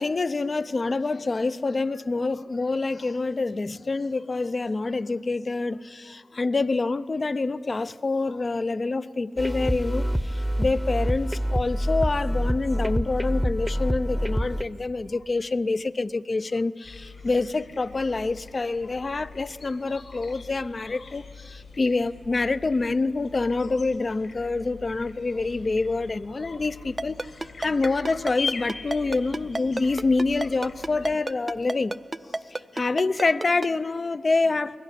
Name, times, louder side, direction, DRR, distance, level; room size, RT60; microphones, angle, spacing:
voice 1, 0.0-10.1 10.6-27.3 27.6-31.9 32.7-34.8, left 3 dB, 50° left, 0.6 m, -26 dB
sound 1, 9.4-14.6, equal, ahead, 0.8 m, -26 dB
sound 2, 16.8-31.2, left 5 dB, 75° left, 4.7 m, -42 dB
Ringtone, 27.0-33.7, right 2 dB, 30° right, 0.6 m, -29 dB
21.5 x 17.0 x 10.0 m
cardioid pair, 45°, 0 cm